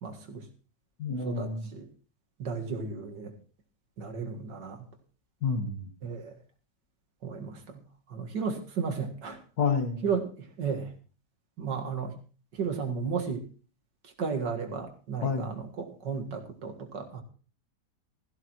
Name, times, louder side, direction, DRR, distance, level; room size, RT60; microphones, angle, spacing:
voice 1, 0.0-0.5 1.2-1.9 2.4-3.3 4.0-4.9 6.0-6.4 7.2-7.8 8.1-9.4 10.0-10.9 11.6-12.1 12.5-13.5 14.0-17.2, right 5 dB, 90° right, 3 dB, 2.4 m, -34 dB
voice 2, 1.0-1.7 5.4-5.9 9.6-10.1 15.2-15.5, left 5 dB, 65° left, 6 dB, 2.1 m, -29 dB
16.5 x 14.0 x 3.0 m, 0.38 s
omnidirectional pair, 1.8 m